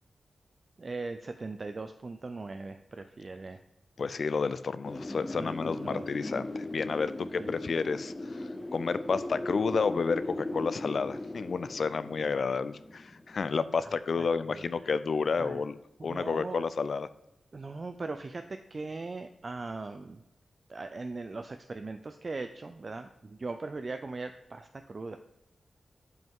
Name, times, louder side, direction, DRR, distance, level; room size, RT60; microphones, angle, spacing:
voice 1, 0.8-3.6 5.3-5.5 5.8-6.0 7.4-7.5 14.2-15.0 15.4-15.6 16.0-16.7 17.5-20.2 20.7-25.2, right 3 dB, 40° right, 8 dB, 0.3 m, -39 dB
voice 2, 4.0-17.1, left 5 dB, 60° left, 14 dB, 0.3 m, -31 dB
Wind, 4.8-13.6, left 1 dB, 20° left, 0.6 m, -38 dB
7.7 x 5.4 x 3.6 m, 0.90 s
wide cardioid pair, 110°, 0 cm